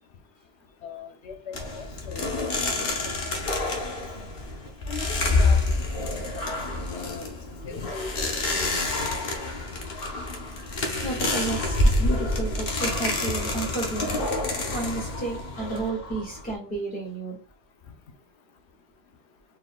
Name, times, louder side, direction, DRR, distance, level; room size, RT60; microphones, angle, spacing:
voice 1, 0.8-2.3 2.8-3.1 3.6-3.7 4.9-6.7 6.9-7.3 7.6-8.1 8.6-8.8, left 5 dB, 90° left, 5 dB, 0.9 m, -40 dB
sound 1, 1.5-16.5, left 2 dB, 60° left, 1.0 m, -27 dB
voice 2, 11.0-14.2 14.7-17.4, right 3 dB, 10° left, -4 dB, 1.7 m, -32 dB
4.0 x 3.5 x 2.3 m, 0.37 s
omnidirectional pair, 1.1 m